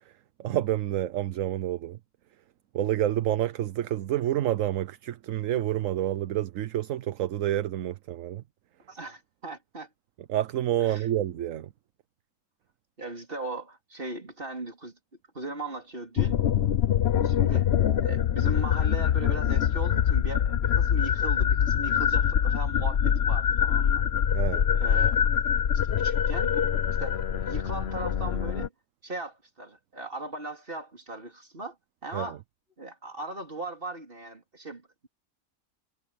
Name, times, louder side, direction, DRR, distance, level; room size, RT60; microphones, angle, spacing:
voice 1, 0.4-2.0 2.7-8.4 10.3-11.7 24.3-24.7 32.1-32.3, right 12 dB, 65° right, 1.0 m, -28 dB
voice 2, 8.9-9.9 10.8-11.1 13.0-15.0 15.3-16.4 17.2-17.7 18.0-24.0 24.6-25.5 25.7-26.6 27.0-28.7 29.0-31.8 32.0-32.4 32.8-35.1, right 2 dB, 35° right, 4.0 m, -38 dB
sound 1, 16.2-28.7, left 9 dB, 50° left, 0.9 m, -24 dB
omnidirectional pair, 1.5 m